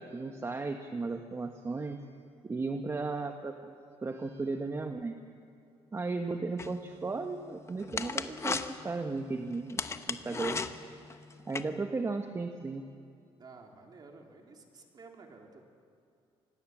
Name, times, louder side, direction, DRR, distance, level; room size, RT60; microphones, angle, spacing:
voice 1, 0.0-2.0 2.4-3.7 4.0-5.2 5.9-10.6 11.5-12.8, right 3 dB, 25° right, 5 dB, 1.2 m, -35 dB
sound 1, 6.6-11.6, left 4 dB, 25° left, 1.0 m, -37 dB
voice 2, 13.4-15.6, right 4 dB, 40° right, 2 dB, 3.5 m, -52 dB
26.0 x 19.0 x 7.4 m, 2.5 s
cardioid pair, 105°, 11 cm